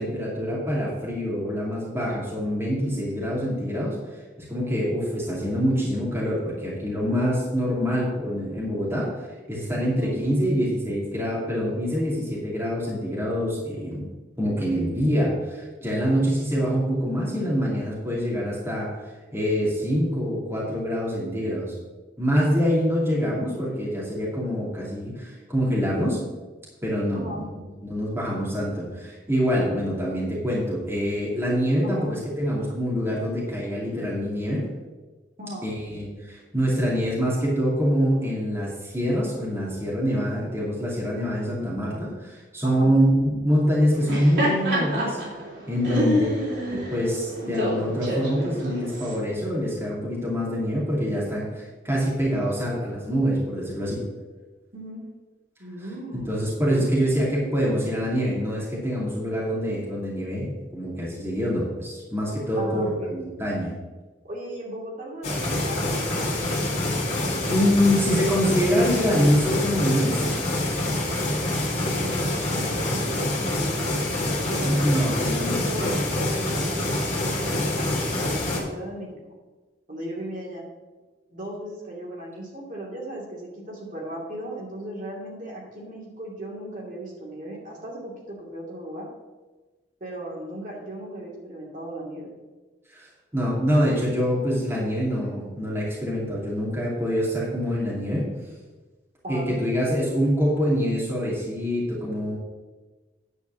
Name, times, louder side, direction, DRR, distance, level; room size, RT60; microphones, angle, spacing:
voice 1, 0.0-4.0 4.4-9.1 9.5-14.0 14.4-18.9 19.3-21.7 22.2-26.2 26.8-34.6 35.6-45.2 45.7-46.3 46.7-54.0 56.3-63.7 67.5-70.4 74.6-75.9 92.9-93.1 93.3-98.2 99.3-102.4, equal, 15° right, -6 dB, 2.4 m, -25 dB
voice 2, 27.1-27.5 31.8-32.1 35.4-35.7 42.6-42.9 45.9-46.2 54.7-55.0 55.6-56.9 62.6-63.1 64.2-66.2 71.9-73.8 74.4-76.8 77.1-79.2 79.9-80.6 81.3-89.1 90.0-92.3 99.2-99.5, right 1 dB, 45° right, -4 dB, 2.6 m, -37 dB
Laughter, 43.9-49.2, equal, 70° right, 3.4 m, -28 dB
sound 1, 65.2-78.6, left 1 dB, 40° left, 2.4 m, -26 dB
10.0 x 4.6 x 7.5 m, 1.2 s
head